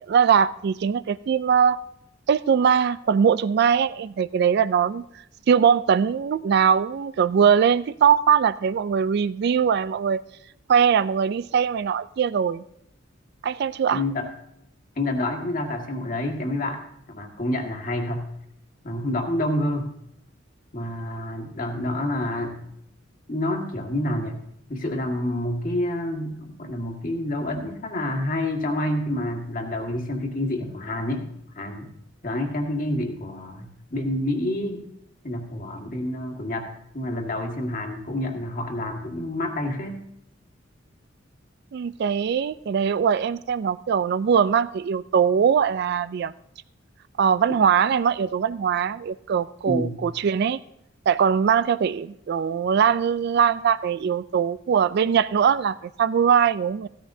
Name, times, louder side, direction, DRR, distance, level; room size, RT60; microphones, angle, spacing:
voice 1, 0.1-1.8 2.3-5.0 5.5-10.2 10.7-12.6 13.4-14.0 41.7-46.3 47.2-50.6 51.1-56.9, right 7 dB, 55° right, 16 dB, 0.3 m, -21 dB
voice 2, 13.9-14.3 14.9-16.8 17.1-18.2 18.8-19.9 20.7-22.6 23.3-24.3 24.7-31.3 31.5-31.9 32.2-34.9 35.2-40.0 49.7-49.9, left 1 dB, 40° left, 2 dB, 1.7 m, -28 dB
15.0 x 13.5 x 2.7 m, 0.77 s
head